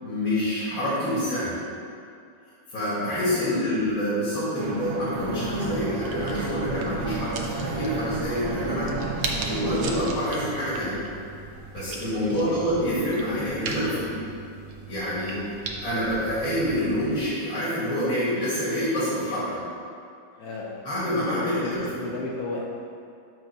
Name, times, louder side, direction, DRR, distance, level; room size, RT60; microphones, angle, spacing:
voice 1, 0.0-1.6 2.7-8.9 9.4-11.0 11.7-14.2 14.9-15.4 15.8-19.6 20.8-21.9, equal, 90° left, -10 dB, 2.6 m, -27 dB
sound 1, 4.6-10.1, right 3 dB, 85° right, 1.3 m, -32 dB
sound 2, 5.2-17.3, right 3 dB, 65° right, 0.9 m, -37 dB
voice 2, 12.2-12.5 20.4-20.9 21.4-21.7 22.0-22.7, left 3 dB, 65° left, -2 dB, 1.0 m, -34 dB
6.1 x 3.4 x 5.8 m, 2.4 s
omnidirectional pair, 2.0 m